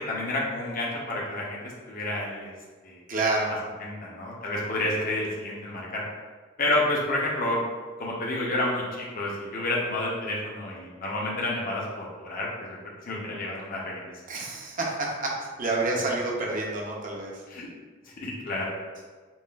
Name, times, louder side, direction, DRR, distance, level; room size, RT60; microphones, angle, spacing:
voice 1, 0.0-1.6 1.9-2.5 2.8-3.0 3.8-6.0 6.6-7.6 8.0-14.4 17.5-17.7 18.0-18.8, left 1 dB, 45° left, -4 dB, 0.7 m, -30 dB
voice 2, 3.1-3.5 14.3-15.3 15.6-17.3, right 2 dB, 45° right, -2 dB, 0.7 m, -28 dB
5.4 x 2.3 x 2.3 m, 1.4 s
head